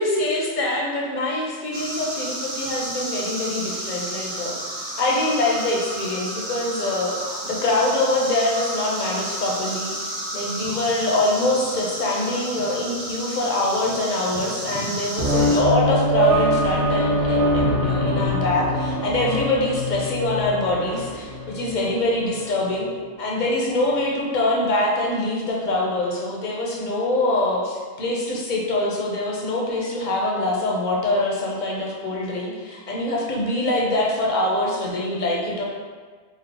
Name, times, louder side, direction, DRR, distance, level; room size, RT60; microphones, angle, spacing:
voice 1, 0.0-22.9 23.2-35.6, left 2 dB, 55° left, -2 dB, 0.6 m, -24 dB
sound 1, 1.7-15.6, right 1 dB, 50° right, 0.3 m, -32 dB
sound 2, 15.2-22.5, equal, 80° right, 1.1 m, -23 dB
3.2 x 2.0 x 3.5 m, 1.5 s
omnidirectional pair, 1.2 m